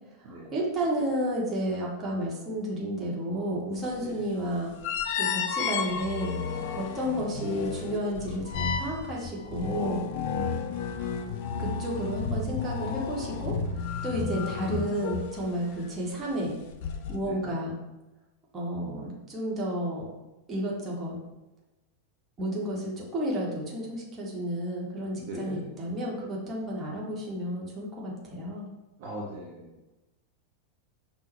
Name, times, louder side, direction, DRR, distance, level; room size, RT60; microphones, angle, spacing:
voice 1, 0.3-4.7 5.1-6.4 6.7-10.0 11.6-16.6 17.1-17.7 18.5-20.1 20.5-21.2 22.4-28.7, equal, 20° right, -4 dB, 1.1 m, -32 dB
sound 1, 3.8-3.9 4.8-15.9 16.7-17.2, left 6 dB, 50° left, 0.3 m, -32 dB
voice 2, 10.3-11.2 17.2-17.4 25.2-25.7 29.0-29.9, equal, 50° right, -3 dB, 0.7 m, -40 dB
5.6 x 2.1 x 3.0 m, 1.0 s
figure-of-eight pair, 90°, 0 cm